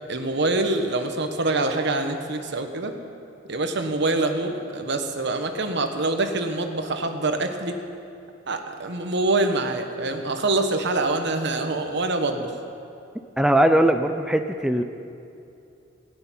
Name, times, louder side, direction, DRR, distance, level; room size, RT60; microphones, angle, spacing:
voice 1, 0.1-3.0 3.5-7.8 8.5-12.5, right 2 dB, 65° right, 6 dB, 1.2 m, -25 dB
voice 2, 13.4-14.8, right 1 dB, 5° right, 6 dB, 0.4 m, -20 dB
17.5 x 6.9 x 9.3 m, 2.6 s
head